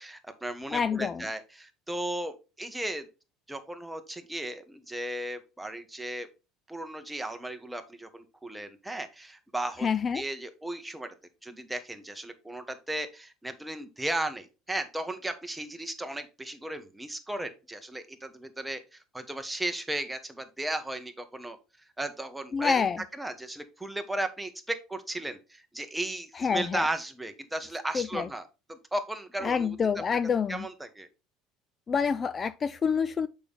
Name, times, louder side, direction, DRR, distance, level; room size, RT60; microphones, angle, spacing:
voice 1, 0.0-3.1 3.5-6.3 6.7-9.9 10.1-11.1 11.4-21.6 22.0-22.8 23.2-29.8 30.5-31.1, right 1 dB, 10° right, 1.3 m, -35 dB
voice 2, 0.7-1.3 9.8-10.2 22.5-23.0 26.4-26.9 27.9-28.3 29.4-30.7 31.9-33.3, left 6 dB, 30° left, 0.4 m, -27 dB
6.8 x 5.5 x 3.4 m
supercardioid pair, 85°, 0 cm